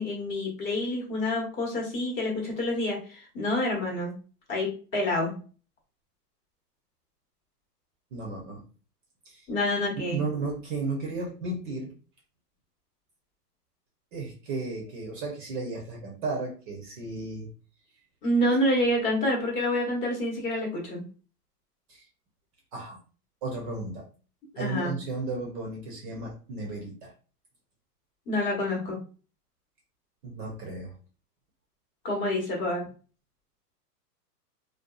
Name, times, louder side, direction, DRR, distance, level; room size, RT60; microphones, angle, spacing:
voice 1, 0.0-4.1 4.5-5.3 9.5-10.2 18.2-21.0 24.5-24.9 28.3-29.0 32.0-32.9, left 1 dB, 25° left, -1 dB, 0.9 m, -28 dB
voice 2, 8.1-8.6 9.2-9.5 10.0-11.9 14.1-17.5 21.9-22.1 22.7-23.0 23.4-24.1 24.6-27.1 30.2-31.0, right 3 dB, 35° right, 0 dB, 0.6 m, -34 dB
2.6 x 2.3 x 2.2 m, 0.38 s
hypercardioid pair, 130°, 48 cm